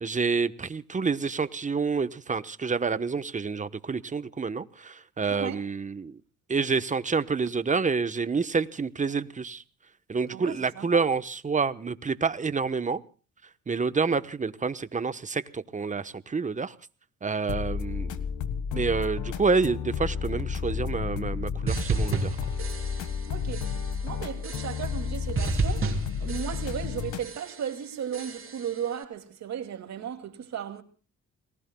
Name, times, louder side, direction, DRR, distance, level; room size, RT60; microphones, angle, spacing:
voice 1, 0.0-6.2 6.5-9.6 10.1-13.0 13.7-16.7 17.2-18.2 18.7-22.4, right 4 dB, 25° right, 1.1 m, -28 dB
voice 2, 5.3-5.7 10.3-11.1 23.3-23.8 24.0-30.8, right 8 dB, 65° right, 2.6 m, -35 dB
sound 1, 17.5-27.3, left 6 dB, 80° left, 1.6 m, -32 dB
sound 2, 21.7-23.3 23.5-24.0 24.4-25.1 25.4-26.9 27.2-27.7 28.1-28.8, right 4 dB, 45° right, 3.7 m, -32 dB
30.0 x 19.5 x 2.3 m
cardioid pair, 90°, 30 cm